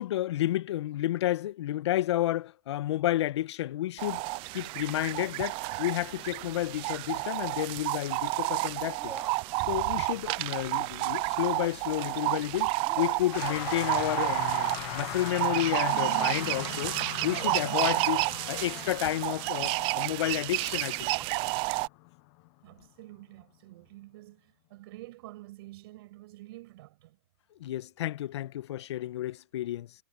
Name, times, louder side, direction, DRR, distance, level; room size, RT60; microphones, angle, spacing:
voice 1, 0.0-9.1 9.7-17.0 17.2-21.1 27.6-29.9, left 14 dB, 60° left, 1.7 m, -31 dB
sound 1, 4.0-21.9, right 25 dB, 35° right, 0.8 m, -31 dB
sound 2, 9.0-10.9 11.2-11.3 12.8-16.7 17.4-19.8 21.1-21.3, right 6 dB, 15° right, 1.8 m, -46 dB
sound 3, 13.3-22.8, left 27 dB, 40° left, 1.4 m, -40 dB
voice 2, 22.6-27.2, right 18 dB, 50° right, 6.5 m, -49 dB
hypercardioid pair, 125°, 16 cm